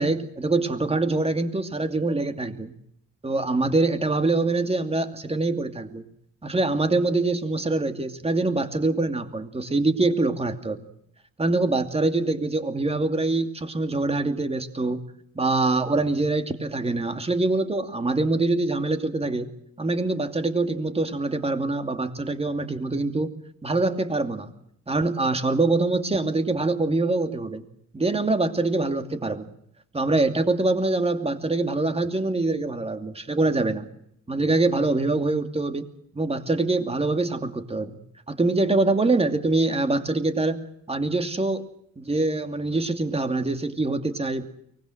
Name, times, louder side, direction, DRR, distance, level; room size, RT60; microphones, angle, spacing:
voice 1, 0.0-2.7 3.2-6.0 6.4-10.9 11.4-15.0 15.3-19.5 19.8-23.3 23.6-24.5 24.9-27.6 27.9-29.5 29.9-33.9 34.3-35.8 36.1-38.0 38.3-40.6 40.9-41.6 42.0-44.4, right 2 dB, 20° right, 8 dB, 2.6 m, -24 dB
24.0 x 20.0 x 7.8 m, 0.72 s
cardioid pair, 90°, 30 cm